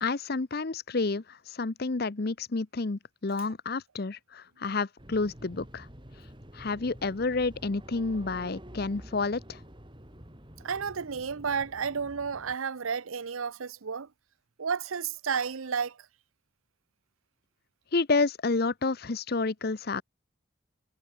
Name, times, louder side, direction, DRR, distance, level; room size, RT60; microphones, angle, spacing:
voice 1, 0.0-5.9 6.5-9.6 17.9-20.0, left 3 dB, 50° left, 0.7 m, -30 dB
sound 1, 5.0-12.6, equal, 25° right, 4.0 m, -48 dB
voice 2, 10.6-14.1 14.6-16.0, right 6 dB, 85° right, 0.7 m, -32 dB
head